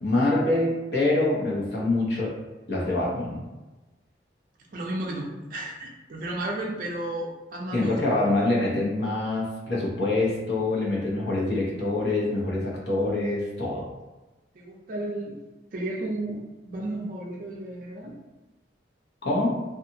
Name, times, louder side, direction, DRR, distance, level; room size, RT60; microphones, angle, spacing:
voice 1, 0.0-2.4 2.7-3.4 7.7-13.9 19.2-19.6, left 2 dB, 65° left, -4 dB, 0.8 m, -25 dB
voice 2, 4.7-8.0 14.5-15.4 15.7-18.1, right 1 dB, 45° right, -1 dB, 0.4 m, -33 dB
2.7 x 2.3 x 2.6 m, 1.1 s
head